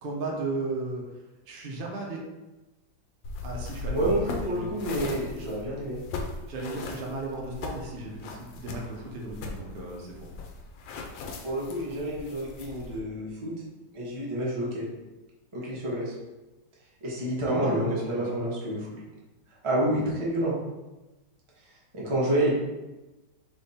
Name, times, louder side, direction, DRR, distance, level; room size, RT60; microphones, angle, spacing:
voice 1, 0.0-1.0 1.5-2.2 3.4-4.1 4.5-4.7 6.5-10.2 17.4-18.4, right 2 dB, 80° right, -1 dB, 0.5 m, -35 dB
sound 1, 3.2-13.0, left 3 dB, 90° left, 1.4 m, -39 dB
voice 2, 3.9-6.0 11.4-13.5 13.9-14.9 15.5-16.2 17.0-18.9 19.6-20.5 21.9-22.6, right 1 dB, 20° right, -5 dB, 0.8 m, -28 dB
3.5 x 3.3 x 4.2 m, 1.1 s
omnidirectional pair, 2.1 m